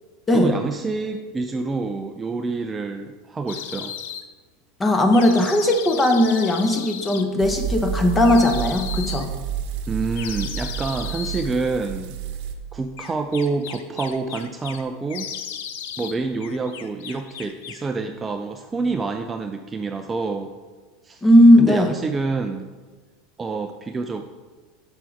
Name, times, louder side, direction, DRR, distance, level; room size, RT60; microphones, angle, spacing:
voice 1, 0.3-4.0 5.4-5.5 9.9-12.2 12.7-15.3 16.0-20.5 21.0-21.2 21.6-22.7 23.4-24.3, right 4 dB, 15° right, 6 dB, 0.3 m, -27 dB
sound 1, 3.5-4.2 5.1-7.2 8.2-9.3 10.1-11.5 13.0-14.8 15.1-16.2 16.4-17.9, left 8 dB, 80° left, 0.6 m, -35 dB
voice 2, 4.8-9.3 21.2-21.9, left 1 dB, 15° left, 5 dB, 0.8 m, -17 dB
sound 2, 7.4-12.5, right 6 dB, 60° right, 0.8 m, -30 dB
6.0 x 5.8 x 4.7 m, 1.4 s
supercardioid pair, 145°, 0 cm